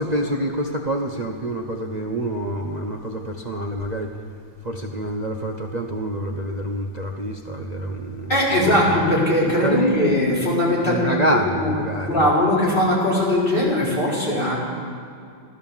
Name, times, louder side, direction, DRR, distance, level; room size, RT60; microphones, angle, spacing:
voice 1, 0.0-4.1 4.6-8.3 8.6-8.9 9.5-10.0 10.9-12.2, right 1 dB, 80° right, 1 dB, 0.3 m, -26 dB
voice 2, 8.3-11.7 12.0-14.6, left 1 dB, 25° left, -7 dB, 4.6 m, -20 dB
15.5 x 12.5 x 7.2 m, 2.4 s
omnidirectional pair, 2.2 m